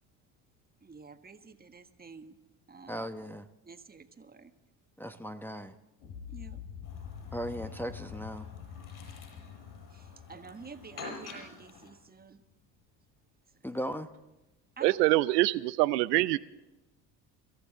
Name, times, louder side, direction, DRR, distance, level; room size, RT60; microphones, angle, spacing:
voice 1, 0.8-2.4 2.7-3.1 3.6-4.5 6.3-6.6 9.9-12.4 13.5-13.8 14.8-15.1, right 4 dB, 20° right, 8 dB, 1.5 m, -49 dB
voice 2, 2.9-3.5 5.0-5.8 7.3-8.5 13.6-14.1, equal, 5° left, 7 dB, 0.9 m, -37 dB
sound 1, 6.0-12.1, left 8 dB, 65° left, 2.4 m, -46 dB
Chirp tweet, 6.8-11.9, left 3 dB, 50° left, 7.8 m, -49 dB
voice 3, 14.8-16.4, right 18 dB, 75° right, 14 dB, 0.6 m, -25 dB
25.5 x 14.5 x 3.7 m, 1.0 s
hypercardioid pair, 65°, 49 cm